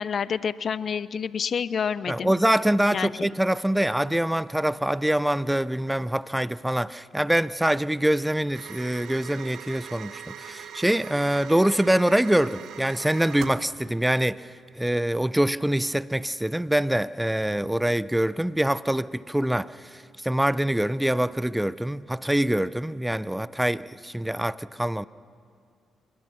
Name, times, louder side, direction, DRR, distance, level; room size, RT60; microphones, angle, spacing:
voice 1, 0.0-2.3 2.9-3.3, left 7 dB, 55° left, 0.5 m, -28 dB
voice 2, 2.1-25.0, right 1 dB, 5° right, 0.6 m, -24 dB
sound 1, 8.5-13.7, right 8 dB, 70° right, 1.1 m, -41 dB
25.5 x 21.0 x 6.0 m
hypercardioid pair, 45°, 0 cm